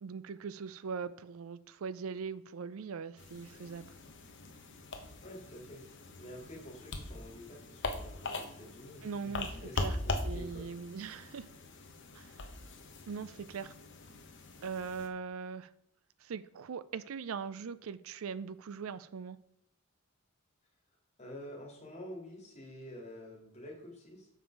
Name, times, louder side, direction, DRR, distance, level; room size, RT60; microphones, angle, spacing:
voice 1, 0.0-3.9 9.0-9.5 9.8-10.0 10.2-11.5 12.1-12.3 13.1-13.7 14.6-15.7 16.2-19.4, right 5 dB, 75° right, 0.4 m, -40 dB
sound 1, 3.2-15.1, left 2 dB, 60° left, 1.1 m, -41 dB
voice 2, 5.2-9.1 9.3-10.7 21.2-24.3, equal, 30° left, 2.4 m, -48 dB
7.4 x 5.5 x 4.7 m
head